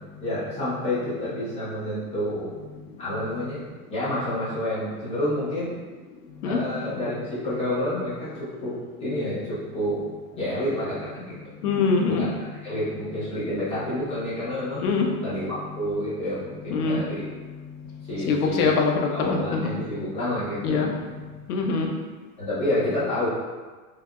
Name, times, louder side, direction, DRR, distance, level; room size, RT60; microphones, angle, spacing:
voice 1, 0.2-2.5 3.0-3.6 3.9-5.7 6.4-8.7 9.0-10.0 10.3-11.3 12.0-12.3 12.6-14.8 15.2-17.3 18.1-18.8 19.1-20.9 22.4-23.3, left 1 dB, 15° left, -11 dB, 1.0 m, -29 dB
voice 2, 11.6-12.2 14.8-15.1 16.7-17.0 18.3-19.7 20.6-20.9 21.5-21.9, left 4 dB, 80° left, 2 dB, 0.7 m, -23 dB
3.3 x 2.7 x 2.4 m, 1.4 s
supercardioid pair, 135°, 44 cm